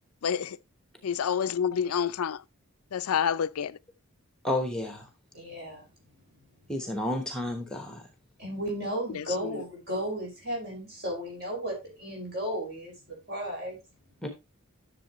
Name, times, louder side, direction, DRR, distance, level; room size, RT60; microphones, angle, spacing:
voice 1, 0.2-0.6 1.0-2.4 2.9-3.8 9.1-9.6, left 7 dB, 85° left, 0.4 m, -28 dB
voice 2, 4.4-5.0 6.7-8.0 14.2-14.3, left 1 dB, 5° left, 1.0 m, -31 dB
voice 3, 5.3-5.9 8.4-13.8, equal, 50° right, 5.4 m, -34 dB
11.0 x 6.8 x 3.0 m
head